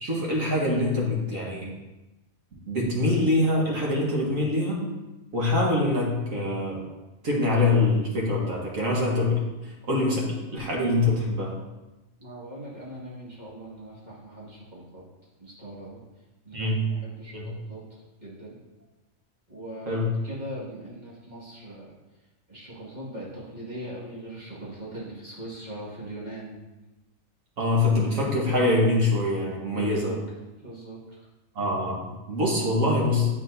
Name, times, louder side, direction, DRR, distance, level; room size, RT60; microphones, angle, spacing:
voice 1, 0.0-1.7 2.5-4.8 5.3-6.8 7.2-10.3 10.5-11.5 16.5-16.8 17.3-17.5 19.9-20.1 27.6-30.1 31.6-33.3, left 2 dB, 75° right, -3 dB, 1.8 m, -24 dB
voice 2, 12.2-15.0 15.4-16.0 16.4-17.8 18.2-18.6 19.5-22.0 22.5-26.6 29.7-30.2 30.6-31.2, right 1 dB, 35° right, -8 dB, 2.0 m, -40 dB
9.3 x 4.2 x 2.7 m, 1.1 s
omnidirectional pair, 1.4 m